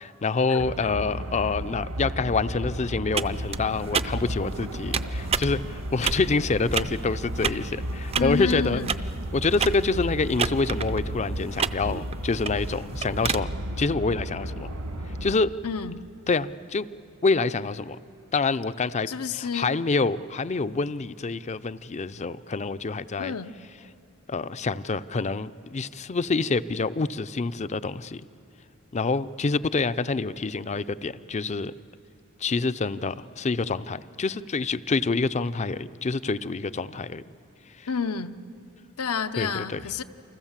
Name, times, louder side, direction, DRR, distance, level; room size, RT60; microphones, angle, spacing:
voice 1, 0.2-8.8 9.3-13.5 13.8-14.7 15.2-15.5 16.3-16.9 17.2-18.0 18.3-23.3 24.3-28.2 28.9-31.7 32.4-37.2 37.8-37.9 39.4-39.8, left 4 dB, 30° left, 15 dB, 0.5 m, -27 dB
sound 1, 0.6-15.4, equal, 70° right, 1.7 m, -33 dB
sound 2, 3.1-13.4, right 6 dB, 25° right, 0.5 m, -32 dB
voice 2, 8.2-9.0 15.6-16.1 19.1-19.7 23.2-23.5 37.9-38.3 39.0-40.0, left 6 dB, 80° left, 10 dB, 0.8 m, -29 dB
29.5 x 25.0 x 7.4 m, 2.7 s
head